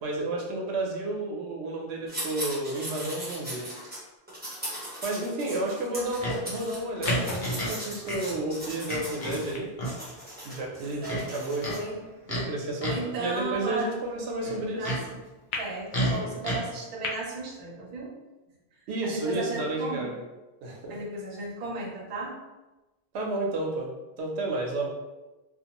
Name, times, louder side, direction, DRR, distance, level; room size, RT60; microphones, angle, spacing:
voice 1, 0.0-3.7 5.0-9.7 10.4-11.7 12.3-12.9 13.2-14.9 18.9-20.2 20.6-21.0 23.1-23.9 24.2-24.9, right 2 dB, 90° right, 0 dB, 0.9 m, -31 dB
sound 1, 2.1-4.0 4.3-9.6 9.8-11.8, right 1 dB, 10° right, 0.7 m, -39 dB
Livestock farm animals working animals, 6.2-6.4 7.0-7.8 8.0-8.2 8.9-9.4 9.8-10.0 11.0-11.8 12.3-12.5 12.8-13.1 14.4-15.0 15.9-16.6, equal, 50° left, 0.8 m, -30 dB
sound 2, 7.0-11.4 12.0-12.1 15.5-15.6 17.0-17.1, left 4 dB, 80° left, 0.9 m, -39 dB
voice 2, 11.6-12.0 12.8-13.9 14.6-15.2 15.6-18.1 19.0-20.1 20.9-22.4, right 2 dB, 55° right, -2 dB, 0.7 m, -35 dB
2.5 x 2.2 x 2.8 m, 1.1 s
omnidirectional pair, 1.1 m